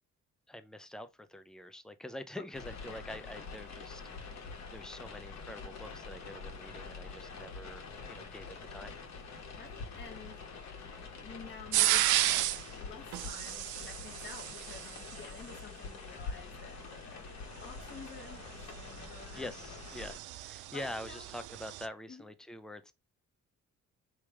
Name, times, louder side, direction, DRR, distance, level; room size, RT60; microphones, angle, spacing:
voice 1, 0.5-4.0 4.7-8.9 19.4-22.9, left 1 dB, ahead, 0.5 m, -45 dB
sound 1, 2.5-20.2, left 4 dB, 60° left, 1.3 m, -46 dB
voice 2, 9.5-10.4 11.2-19.8 20.7-21.3 22.1-22.3, left 5 dB, 35° left, 1.8 m, -51 dB
sound 2, 11.7-12.7 13.1-15.2 17.8-21.9, right 14 dB, 85° right, 0.5 m, -33 dB
3.4 x 3.1 x 4.6 m
cardioid pair, 90°, 30 cm